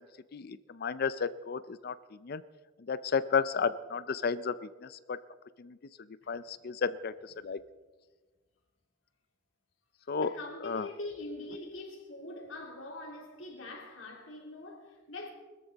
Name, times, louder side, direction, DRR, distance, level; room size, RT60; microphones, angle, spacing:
voice 1, 0.3-1.9 2.2-2.4 2.9-5.2 5.6-5.8 6.3-7.6 10.1-10.3 10.6-10.9, left 5 dB, 50° left, 0.5 m, -32 dB
voice 2, 10.2-15.3, left 2 dB, 85° left, 3.4 m, -43 dB
20.5 x 13.5 x 4.1 m
head